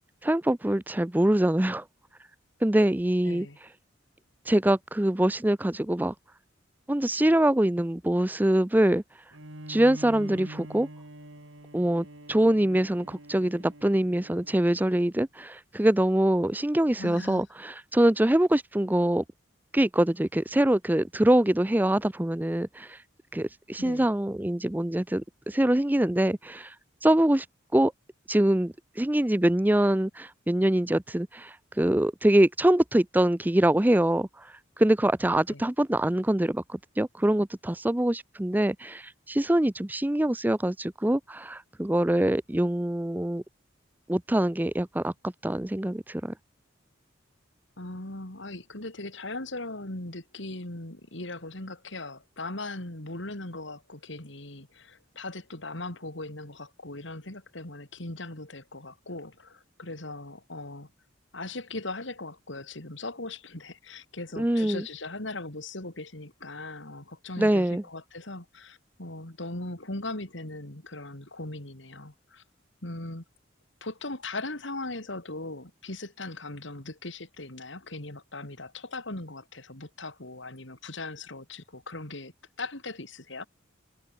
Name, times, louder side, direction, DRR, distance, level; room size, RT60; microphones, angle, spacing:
voice 1, 0.2-1.8 2.6-3.5 4.5-6.1 6.9-9.0 9.7-10.9 11.7-19.2 19.7-23.0 23.3-26.7 27.0-27.5 27.7-27.9 28.3-34.3 34.8-43.4 44.1-45.1 45.4-46.3 64.4-64.8 67.4-67.8, right 1 dB, 10° right, 0.5 m, -24 dB
voice 2, 3.2-3.6 17.0-17.4 23.8-24.1 35.5-35.6 47.8-60.9 61.3-72.4 72.8-73.2 73.8-82.3 82.6-83.5, left 2 dB, 70° left, 3.6 m, -39 dB
Bowed string instrument, 9.3-15.0, right 1 dB, 80° right, 5.4 m, -45 dB
head